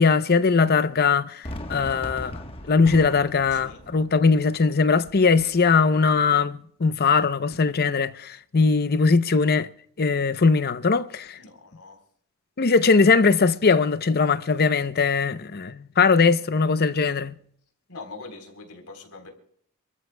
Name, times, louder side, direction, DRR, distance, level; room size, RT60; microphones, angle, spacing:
voice 1, 0.0-2.4 2.7-9.7 10.0-11.4 12.6-17.3, left 4 dB, 45° left, 0.6 m, -20 dB
Fireworks, 1.4-6.5, left 1 dB, 25° left, 1.2 m, -40 dB
voice 2, 11.4-12.0 17.9-19.3, left 3 dB, 90° left, 3.7 m, -43 dB
27.5 x 14.0 x 2.2 m
head